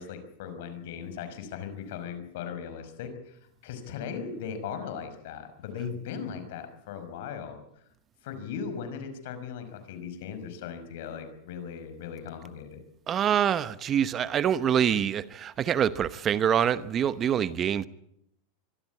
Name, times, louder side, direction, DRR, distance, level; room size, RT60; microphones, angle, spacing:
voice 1, 0.0-7.6 8.2-12.8, left 7 dB, 70° left, 5.7 m, -38 dB
voice 2, 13.1-17.9, right 9 dB, 30° right, 0.9 m, -25 dB
24.0 x 14.0 x 9.7 m
supercardioid pair, 135°, 0 cm